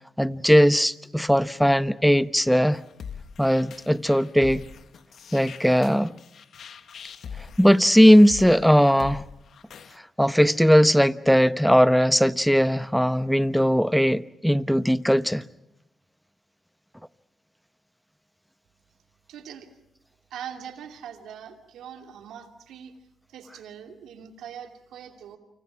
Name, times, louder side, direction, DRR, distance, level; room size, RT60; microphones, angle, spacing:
voice 1, 0.2-2.8 3.4-4.6 5.3-6.2 7.4-9.2 10.2-15.4, equal, ahead, 1.1 m, -19 dB
sound 1, 2.7-10.0, left 7 dB, 70° left, 1.3 m, -42 dB
voice 2, 19.3-19.7 20.3-22.9 23.3-25.4, right 8 dB, 85° right, 2.7 m, -42 dB
29.0 x 26.0 x 6.0 m
supercardioid pair, 60°, 0 cm